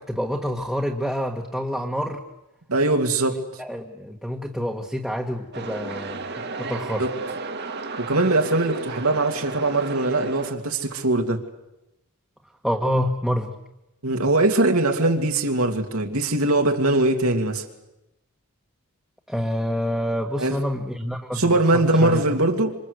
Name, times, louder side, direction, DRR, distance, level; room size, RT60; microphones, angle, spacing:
voice 1, 0.0-2.2 3.6-6.3 6.6-7.1 12.6-13.5 19.3-22.4, equal, ahead, 0 dB, 1.6 m, -27 dB
voice 2, 2.7-3.6 7.0-7.1 8.0-11.4 14.0-17.6 20.4-20.6 21.3-22.8, right 2 dB, 75° right, 3 dB, 2.5 m, -21 dB
sound 1, 5.5-10.5, right 3 dB, 50° right, 1.9 m, -33 dB
26.5 x 26.0 x 8.1 m, 0.92 s
head